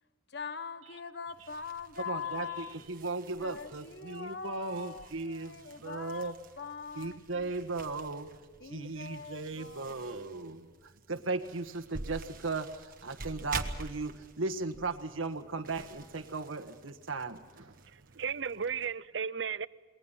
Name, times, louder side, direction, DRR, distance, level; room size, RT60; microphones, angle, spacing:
voice 1, 0.3-2.8 3.4-7.5 8.6-10.3, left 6 dB, 55° left, 1.1 m, -42 dB
sound 1, 1.3-18.9, right 3 dB, 45° right, 1.5 m, -48 dB
voice 2, 2.1-6.3 6.9-8.3 8.6-10.7 11.1-17.7, right 3 dB, 90° right, 1.6 m, -37 dB
voice 3, 17.9-19.7, right 6 dB, 60° right, 0.6 m, -35 dB
28.0 x 22.0 x 5.8 m
head